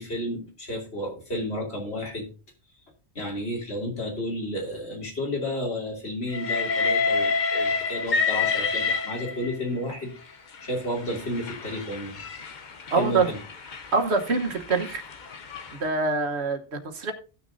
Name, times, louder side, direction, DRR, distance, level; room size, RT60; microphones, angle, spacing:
voice 1, 0.0-2.3 3.1-10.1 10.6-12.2 13.0-13.4, left 1 dB, 70° left, -1 dB, 3.1 m, -32 dB
Train, 6.3-9.7 10.5-15.8, left 4 dB, 50° left, 0.9 m, -28 dB
voice 2, 12.9-13.3 13.9-15.0 15.7-17.1, right 4 dB, 75° right, 6 dB, 1.5 m, -25 dB
17.5 x 6.3 x 2.7 m, 0.35 s
omnidirectional pair, 1.1 m